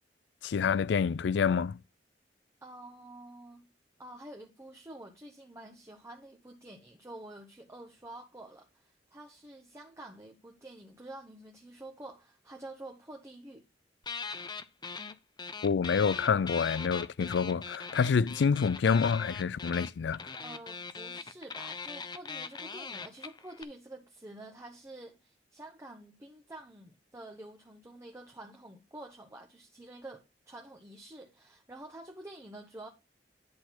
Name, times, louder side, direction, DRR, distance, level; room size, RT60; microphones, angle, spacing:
voice 1, 0.4-1.8 15.6-20.2, left 6 dB, 75° left, 0.4 m, -27 dB
voice 2, 2.6-3.7 4.0-13.6 20.4-32.9, right 1 dB, 15° right, 1.1 m, -48 dB
sound 1, 14.0-15.1 15.4-23.6, left 5 dB, 25° left, 0.7 m, -40 dB
10.5 x 4.2 x 5.8 m
head